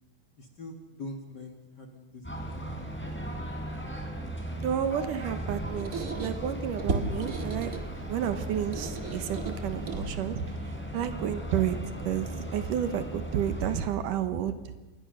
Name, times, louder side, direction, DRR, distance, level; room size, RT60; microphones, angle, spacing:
voice 1, 0.4-2.8, left 2 dB, 40° left, 4 dB, 1.9 m, -44 dB
sound 1, 2.2-13.9, right 1 dB, 5° left, 3.4 m, -37 dB
voice 2, 4.5-7.7 8.1-10.5 10.9-11.8 12.1-14.5, right 9 dB, 75° right, 10 dB, 2.6 m, -31 dB
Squeak, 5.2-10.5, right 3 dB, 30° right, 1.7 m, -36 dB
27.0 x 21.0 x 6.5 m, 1.2 s
omnidirectional pair, 4.0 m